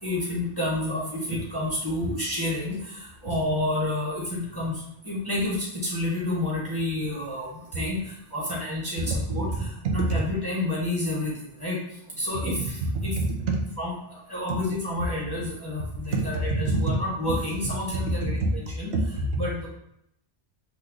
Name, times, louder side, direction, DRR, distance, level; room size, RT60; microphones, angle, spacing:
voice 1, 0.0-2.8 3.2-4.8 5.0-5.6 5.8-7.5 7.7-8.0 8.3-11.3 11.6-11.8 12.2-13.1 13.8-13.9 14.3-18.9 19.4-19.7, left 1 dB, 25° left, -6 dB, 0.6 m, -29 dB
voice 2, 12.8-13.6 16.1-17.0 18.0-18.3 18.9-19.4, right 2 dB, 70° right, 1 dB, 0.8 m, -26 dB
3.0 x 2.2 x 3.5 m, 0.78 s
omnidirectional pair, 1.2 m